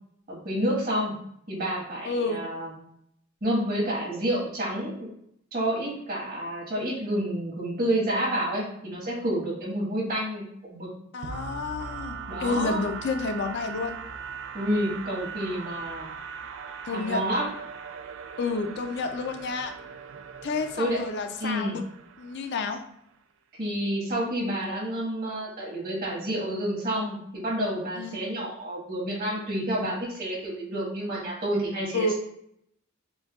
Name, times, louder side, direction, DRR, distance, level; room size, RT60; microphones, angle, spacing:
voice 1, 0.3-1.1 1.5-2.7 3.4-5.1 5.5-10.4 10.7-10.9 12.3-12.8 14.5-16.1 16.9-17.5 20.8-21.0 21.4-21.8 23.6-32.1, right 1 dB, 45° right, -3 dB, 1.3 m, -29 dB
voice 2, 2.0-2.4 11.1-14.0 16.9-17.2 18.4-19.7 20.4-21.8 22.2-22.8 27.9-28.1 31.9-32.1, left 3 dB, 55° left, 6 dB, 0.4 m, -30 dB
sound 1, 11.2-23.0, right 6 dB, 65° right, 0.3 m, -40 dB
6.0 x 2.2 x 2.3 m, 0.71 s
head